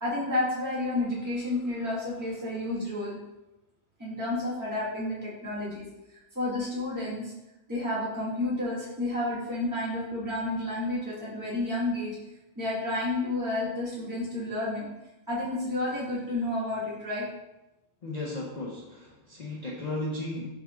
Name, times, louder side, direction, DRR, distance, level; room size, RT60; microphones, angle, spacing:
voice 1, 0.0-3.2 4.0-5.8 6.3-7.3 7.7-12.2 12.5-14.9 15.3-17.3, left 2 dB, 15° right, -9 dB, 1.4 m, -30 dB
voice 2, 18.0-20.5, left 2 dB, 65° left, -4 dB, 0.4 m, -35 dB
4.4 x 3.8 x 2.4 m, 0.99 s
omnidirectional pair, 1.4 m